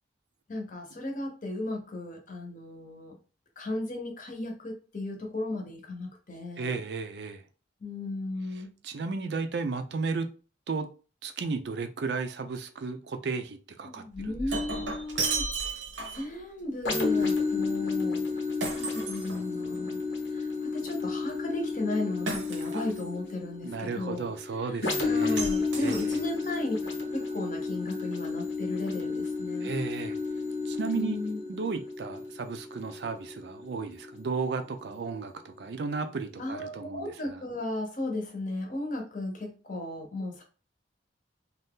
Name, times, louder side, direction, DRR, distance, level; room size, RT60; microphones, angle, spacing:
voice 1, 0.5-3.2 3.6-6.8 7.8-8.8 13.8-15.5 16.1-18.3 18.7-20.0 20.3-24.3 25.0-26.8 27.1-29.8 30.9-31.4 36.4-40.4, left 2 dB, 45° left, 0.8 m, -35 dB
voice 2, 6.6-7.4 8.8-10.3 10.7-10.9 11.2-14.4 14.7-14.8 22.7-22.8 23.6-25.4 25.8-26.2 29.6-30.2 30.6-31.2 31.5-37.4, right 4 dB, 60° right, 0.4 m, -34 dB
Shatter, 14.1-16.3 18.6-19.9 22.3-23.1 25.4-26.5, right 3 dB, 85° right, 0.8 m, -34 dB
sound 1, 16.8-34.4 34.9-35.0, left 4 dB, 90° left, 1.0 m, -32 dB
2.7 x 2.3 x 3.5 m
head